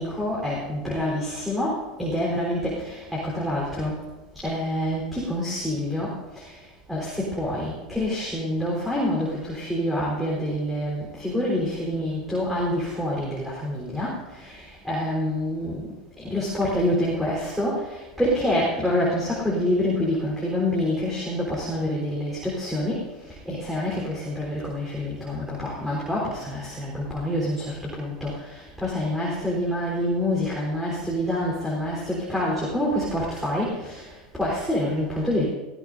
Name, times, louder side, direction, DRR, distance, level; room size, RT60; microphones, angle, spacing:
voice 1, 0.0-4.0 4.4-6.1 6.4-6.5 6.9-15.8 16.2-35.4, left 1 dB, ahead, -6 dB, 4.0 m, -27 dB
18.0 x 16.0 x 2.7 m, 1.2 s
hypercardioid pair, 95°, 4 cm